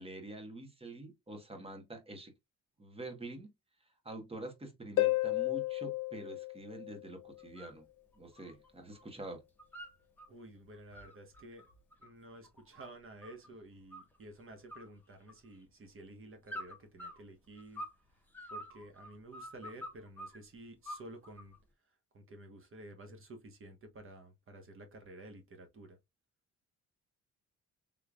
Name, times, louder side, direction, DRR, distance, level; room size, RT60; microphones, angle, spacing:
voice 1, 0.0-2.3 2.8-3.5 4.0-7.8 8.2-9.4, right 2 dB, 20° right, 1.3 m, -46 dB
Harp, 5.0-7.5 11.0-11.1, left 17 dB, 80° left, 0.7 m, -33 dB
sound 1, 7.4-7.8 8.1-9.1 9.4-10.3 10.7-13.5 13.9-14.4 14.7-15.7 16.5-18.0 18.3-20.4 20.8-21.6, equal, 5° left, 1.1 m, -47 dB
voice 2, 10.3-11.7 12.0-17.8 18.5-21.5 22.1-26.0, right 1 dB, 45° right, 1.3 m, -52 dB
3.7 x 3.3 x 2.4 m
cardioid pair, 90°, 30 cm